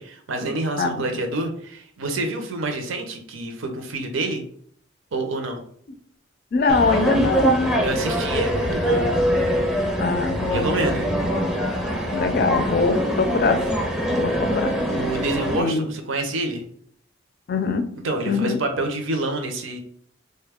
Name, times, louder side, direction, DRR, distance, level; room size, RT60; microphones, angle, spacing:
voice 1, 0.0-4.4 5.1-5.6 7.8-9.1 10.5-11.1 14.9-16.6 18.0-19.8, right 2 dB, 80° right, 0.6 m, -27 dB
voice 2, 6.5-7.7 10.0-10.7 12.1-13.6 14.1-14.8 15.6-15.9 17.5-18.0 18.3-18.6, left 4 dB, 50° left, 0.4 m, -22 dB
sound 1, 6.7-15.6, equal, 5° right, 0.6 m, -23 dB
3.7 x 2.2 x 3.4 m
head